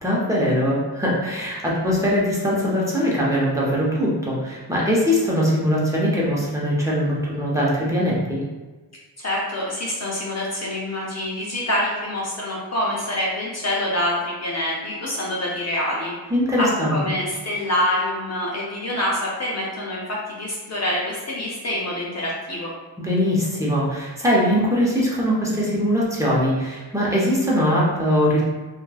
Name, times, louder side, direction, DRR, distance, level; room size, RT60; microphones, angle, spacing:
voice 1, 0.0-8.4 16.3-16.9 23.0-28.4, equal, 5° right, -6 dB, 1.0 m, -21 dB
voice 2, 9.2-16.1 16.6-22.7, left 1 dB, 35° left, -4 dB, 0.7 m, -26 dB
3.0 x 2.5 x 2.3 m, 1.3 s
supercardioid pair, 60°, 45 cm